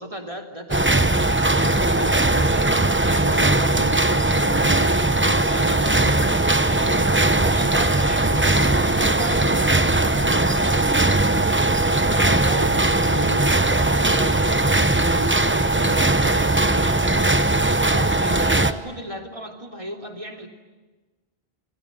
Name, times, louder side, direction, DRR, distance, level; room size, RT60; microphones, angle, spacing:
voice 1, 0.0-11.7 12.1-17.4 17.9-20.5, right 1 dB, 35° right, 2 dB, 3.0 m, -35 dB
sound 1, 0.7-18.7, right 2 dB, 15° right, 0.8 m, -19 dB
27.0 x 21.5 x 9.2 m, 1.2 s
omnidirectional pair, 1.0 m